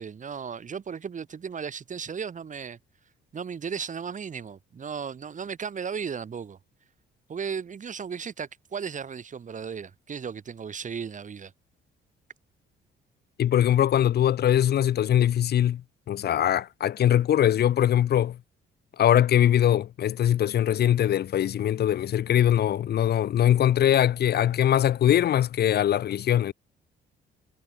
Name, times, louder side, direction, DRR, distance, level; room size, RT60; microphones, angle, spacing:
voice 1, 0.0-2.8 3.3-6.6 7.3-11.5, right 6 dB, 40° right, 1.3 m, -35 dB
voice 2, 13.4-15.8 16.1-18.4 19.0-26.5, left 11 dB, 55° left, 0.6 m, -22 dB
cardioid pair, 90°, 20 cm